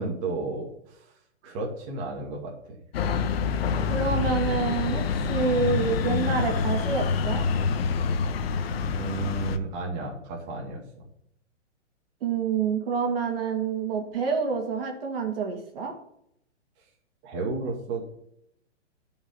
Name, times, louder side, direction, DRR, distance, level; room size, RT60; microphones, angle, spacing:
voice 1, 0.0-2.8 9.0-11.1 16.8-16.9 17.2-18.1, right 3 dB, 30° right, -1 dB, 2.3 m, -33 dB
sound 1, 2.9-9.6, left 5 dB, 55° left, 1.1 m, -26 dB
voice 2, 3.9-5.0 5.3-7.4 12.2-15.9, right 5 dB, 50° right, 2 dB, 2.6 m, -27 dB
11.0 x 5.6 x 5.6 m, 0.72 s
hypercardioid pair, 155°, 37 cm